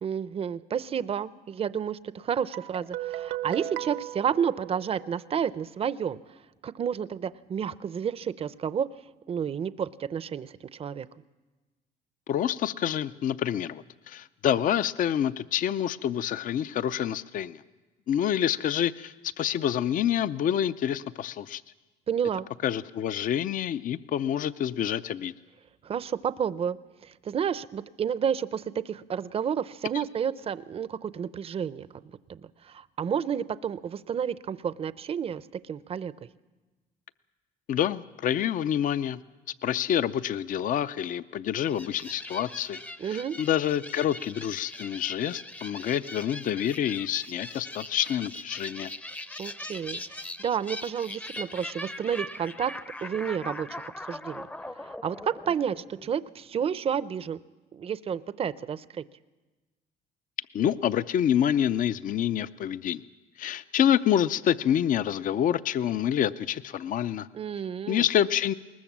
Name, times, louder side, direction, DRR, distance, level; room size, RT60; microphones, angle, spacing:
voice 1, 0.0-6.2 6.6-8.9 9.3-11.1 22.1-22.5 25.8-26.8 27.0-31.9 32.3-36.3 43.0-43.4 49.4-52.7 53.0-54.5 54.8-57.4 57.7-59.0 67.3-68.0, right 8 dB, 35° right, 16 dB, 0.6 m, -31 dB
Guitar, 2.5-5.3, right 14 dB, 85° right, 1.1 m, -36 dB
voice 2, 12.3-17.6 18.1-21.6 22.6-25.3 29.9-30.0 37.7-39.2 39.6-42.8 43.1-48.9 60.5-63.0 63.4-67.3 67.9-68.5, left 10 dB, 55° left, 14 dB, 0.6 m, -27 dB
sound 1, 41.7-56.3, left 1 dB, 10° left, 0.6 m, -41 dB
20.5 x 19.5 x 7.3 m, 1.2 s
cardioid pair, 110°, 17 cm